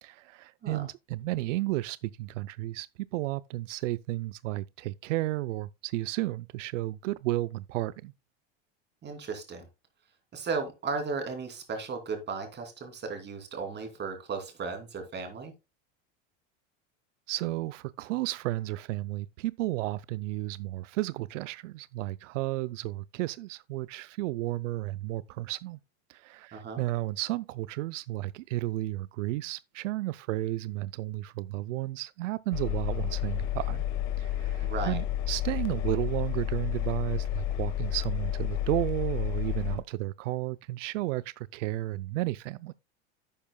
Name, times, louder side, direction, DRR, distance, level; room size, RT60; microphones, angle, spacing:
voice 1, 0.0-2.9 3.1-8.1 17.3-25.8 26.1-33.8 34.2-42.7, right 17 dB, 85° right, 0.5 m, -33 dB
voice 2, 9.0-9.6 10.3-15.5 26.5-26.8 34.6-35.0, right 4 dB, 30° right, 2.8 m, -35 dB
Engine, 32.5-39.8, left 12 dB, 50° left, 1.7 m, -31 dB
11.0 x 8.6 x 2.2 m
supercardioid pair, 120°, 36 cm